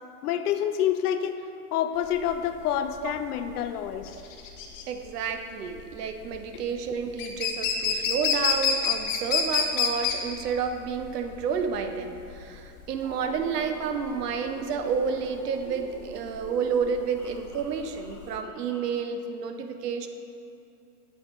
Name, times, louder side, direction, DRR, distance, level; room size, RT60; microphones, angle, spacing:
voice 1, 0.2-1.4 1.7-4.2 6.5-6.6, left 10 dB, 70° left, 9 dB, 0.6 m, -27 dB
sound 1, 2.0-18.4, left 6 dB, 55° left, 0.9 m, -29 dB
voice 2, 4.9-20.1, right 6 dB, 80° right, 7 dB, 0.8 m, -30 dB
sound 2, 13.0-18.9, left 3 dB, 5° left, 0.4 m, -46 dB
7.7 x 5.2 x 3.1 m, 2.7 s
hypercardioid pair, 120°, 47 cm